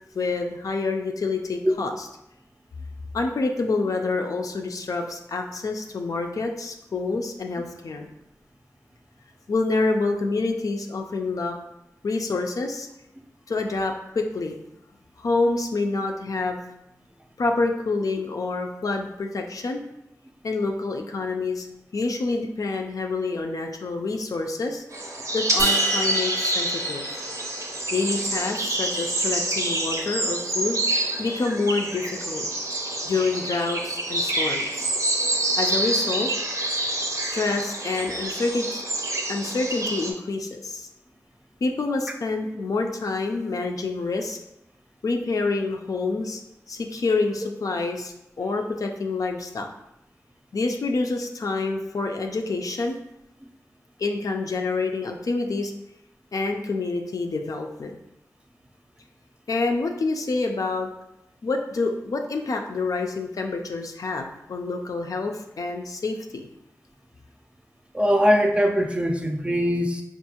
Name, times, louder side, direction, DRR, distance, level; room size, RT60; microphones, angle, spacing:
voice 1, 0.1-1.9 3.1-8.1 9.5-11.6 12.0-12.9 13.5-14.6 15.2-16.6 17.4-19.8 20.4-21.7 21.9-24.8 25.3-27.0 27.9-30.8 31.2-32.5 33.0-34.9 35.6-36.3 37.2-38.8 39.3-40.9 41.6-44.4 45.0-46.4 46.7-49.7 50.5-53.0 54.0-55.7 56.3-57.9 59.5-60.9 61.4-66.4, left 3 dB, 75° left, 3 dB, 0.4 m, -27 dB
sound 1, 24.9-40.1, right 1 dB, 60° right, 0.6 m, -27 dB
sound 2, 25.6-27.9, right 2 dB, 90° right, 1.0 m, -28 dB
voice 2, 67.9-70.0, equal, 20° right, 2 dB, 0.4 m, -21 dB
4.5 x 2.4 x 2.8 m, 0.85 s
wide cardioid pair, 75°, 6 cm